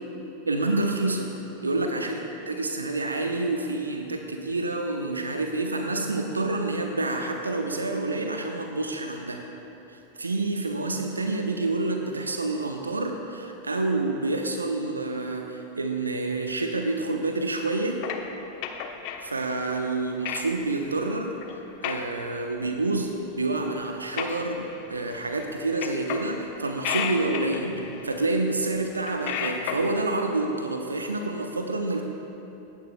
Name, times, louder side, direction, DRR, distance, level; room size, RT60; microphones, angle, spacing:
voice 1, 0.5-1.3 1.6-9.4 9.9-18.0 19.2-32.0, right 2 dB, 80° right, 4 dB, 0.8 m, -28 dB
sound 1, 18.0-19.3 19.9-20.0 20.3-20.4 20.8-21.1 21.4-21.6 21.8-22.0 22.5-22.6 23.3-23.4 23.7-24.9 25.1-25.5 25.8-26.4 26.7-28.3 28.8-29.9, left 8 dB, 45° left, 0.9 m, -33 dB
18.0 x 15.5 x 2.3 m, 3.0 s
figure-of-eight pair, 90°, 0 cm